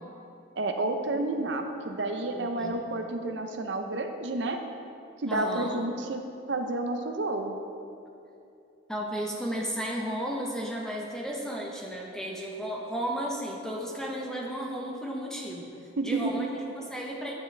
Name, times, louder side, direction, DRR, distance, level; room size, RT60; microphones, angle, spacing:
voice 1, 0.6-4.6 5.2-6.2 6.5-7.6 16.0-16.4, right 2 dB, 70° right, 5 dB, 0.7 m, -30 dB
voice 2, 2.3-2.8 5.3-5.8 8.9-15.7 16.0-17.3, equal, 5° left, -2 dB, 0.8 m, -34 dB
9.1 x 9.0 x 3.3 m, 2.7 s
head